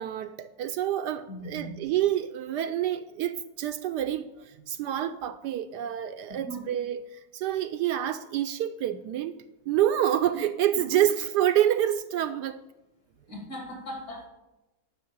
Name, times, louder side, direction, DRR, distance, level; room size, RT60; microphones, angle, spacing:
voice 1, 0.0-4.3 4.7-7.0 7.3-9.3 9.7-12.6, right 11 dB, 75° right, 1.1 m, -27 dB
voice 2, 1.3-1.7 6.3-6.7 10.3-10.4 13.3-14.3, right 1 dB, 55° left, 3.1 m, -38 dB
11.0 x 6.4 x 8.6 m
omnidirectional pair, 2.0 m